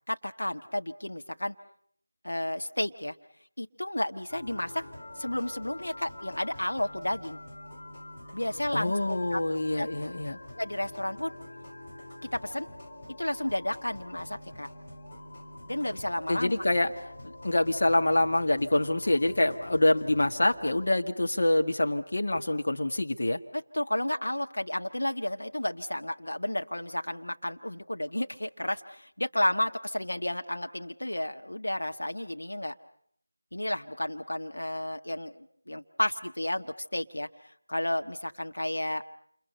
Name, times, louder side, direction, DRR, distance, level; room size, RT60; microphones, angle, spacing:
voice 1, 0.1-1.5 2.2-3.1 3.6-4.8 5.2-7.4 8.3-9.4 9.7-9.9 10.6-11.3 12.3-12.7 13.2-14.7 15.7-16.6 23.5-32.7 33.5-37.3 37.7-39.0, left 1 dB, 70° left, 5 dB, 1.6 m, -32 dB
sound 1, 4.3-20.9, left 1 dB, 30° left, 4.3 m, -46 dB
voice 2, 8.7-10.4 16.3-16.9 17.2-23.4, left 1 dB, 50° left, 4 dB, 1.8 m, -26 dB
28.5 x 28.5 x 5.6 m, 0.64 s
figure-of-eight pair, 165°, 0 cm